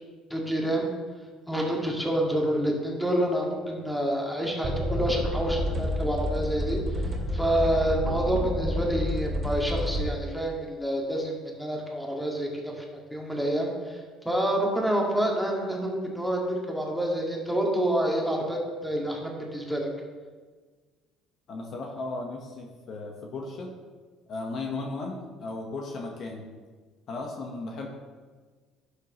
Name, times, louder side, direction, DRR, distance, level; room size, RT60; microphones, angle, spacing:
voice 1, 0.3-0.9 1.5-6.8 7.3-12.8 13.1-19.9, right 1 dB, ahead, -2 dB, 2.1 m, -28 dB
sound 1, 4.6-10.0, left 1 dB, 35° right, 2.6 m, -29 dB
voice 2, 21.5-23.7 24.3-26.5 27.1-27.9, left 3 dB, 55° left, 1 dB, 1.4 m, -35 dB
11.0 x 6.7 x 3.1 m, 1.4 s
supercardioid pair, 80°, 0 cm